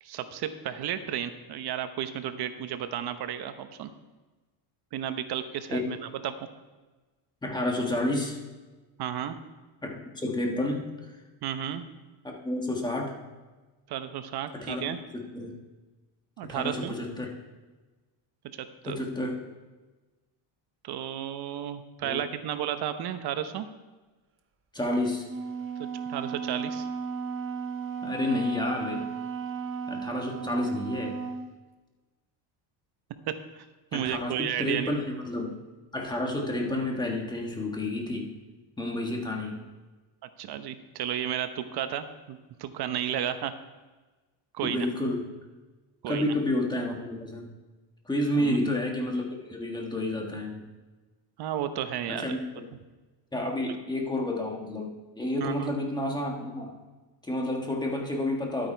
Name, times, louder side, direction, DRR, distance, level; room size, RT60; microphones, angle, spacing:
voice 1, 0.0-3.9 4.9-6.3 9.0-9.4 11.4-11.8 13.9-15.0 16.4-16.9 18.5-19.0 20.8-23.7 25.8-26.9 33.9-35.0 36.2-36.3 40.4-43.5 44.5-44.9 46.0-46.3 48.4-48.6 51.4-52.4 55.4-55.7, right 10 dB, 50° right, 10 dB, 0.9 m, -33 dB
voice 2, 7.4-8.4 9.8-11.1 12.2-13.1 14.5-14.8 15.1-15.6 16.4-17.3 18.8-19.3 22.0-22.2 24.7-25.2 28.0-29.1 29.9-31.2 33.9-35.6 35.9-38.3 38.8-39.6 44.6-45.2 46.1-47.5 48.0-50.6 52.1-52.7 53.3-56.7 57.2-58.7, left 1 dB, 10° left, 1 dB, 1.6 m, -30 dB
Wind instrument woodwind instrument, 25.2-31.5, right 6 dB, 25° right, 0.7 m, -35 dB
11.5 x 8.9 x 4.5 m, 1.2 s
cardioid pair, 140°, 48 cm